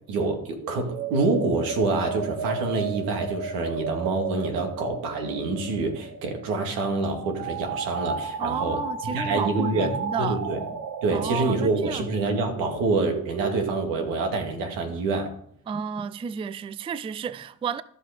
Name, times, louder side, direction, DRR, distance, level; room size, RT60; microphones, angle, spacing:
voice 1, 0.1-9.9 10.2-10.6 11.0-15.3, right 3 dB, 90° right, 2.2 m, -26 dB
sound 1, 0.6-13.9, right 5 dB, 60° right, 1.0 m, -34 dB
voice 2, 8.4-10.4 10.7-10.8 11.1-12.1 15.7-17.8, right 7 dB, 15° right, 0.3 m, -32 dB
14.0 x 5.7 x 5.1 m
cardioid pair, 110°, 34 cm